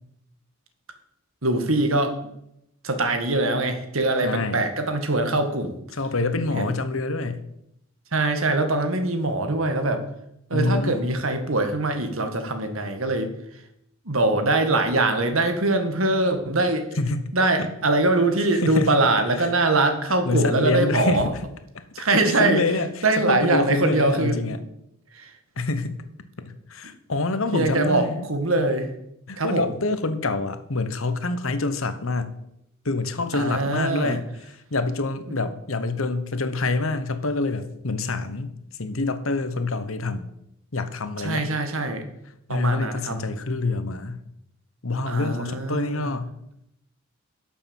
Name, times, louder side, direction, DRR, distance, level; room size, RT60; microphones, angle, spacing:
voice 1, 1.4-2.2 2.8-5.7 6.6-6.7 8.1-10.0 10.5-13.3 14.0-16.9 17.3-21.3 21.9-22.6 23.0-24.4 25.1-25.3 27.5-28.9 29.4-29.7 33.3-34.2 41.2-42.0 42.5-43.2 45.0-46.1, right 2 dB, 75° right, 7 dB, 1.7 m, -23 dB
voice 2, 4.2-4.6 5.9-7.4 10.5-10.9 17.0-17.2 17.6-17.7 18.6-18.9 19.4-19.5 20.2-21.2 22.0-22.9 23.3-24.6 25.6-26.0 26.5-28.3 29.3-32.3 32.8-34.3 34.7-38.5 38.8-40.3 40.7-41.5 42.5-44.2 44.8-46.3, left 3 dB, 75° left, 10 dB, 1.2 m, -26 dB
11.5 x 6.8 x 7.2 m, 0.80 s
head